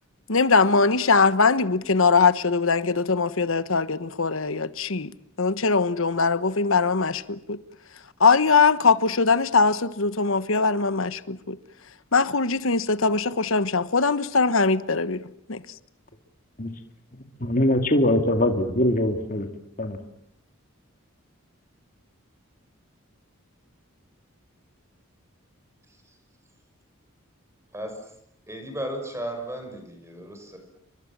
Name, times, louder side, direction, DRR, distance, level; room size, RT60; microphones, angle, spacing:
voice 1, 0.3-7.6 8.2-11.6 12.1-15.6, left 4 dB, 70° left, 1.2 m, -21 dB
voice 2, 17.4-19.5 19.8-20.0, left 1 dB, 40° left, 2.4 m, -22 dB
voice 3, 27.7-28.1 28.5-30.6, right 1 dB, 15° right, 6.1 m, -35 dB
30.0 x 24.0 x 7.5 m
head